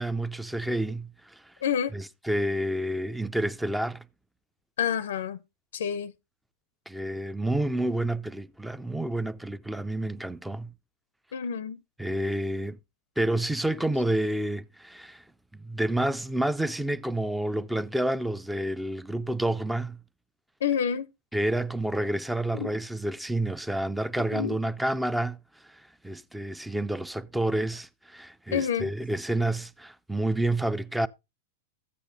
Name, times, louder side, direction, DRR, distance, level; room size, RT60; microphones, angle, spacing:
voice 1, 0.0-1.4 1.9-4.0 6.9-10.7 12.0-12.8 13.2-15.2 15.6-20.0 21.3-25.4 26.0-31.1, right 1 dB, 5° right, 0.4 m, -29 dB
voice 2, 1.6-1.9 4.8-5.4 5.7-6.1 11.3-11.8 20.6-21.1 22.5-22.7 24.3-24.6 28.5-28.9, left 8 dB, 75° left, 0.5 m, -28 dB
13.5 x 8.4 x 2.6 m
hypercardioid pair, 110°, 0 cm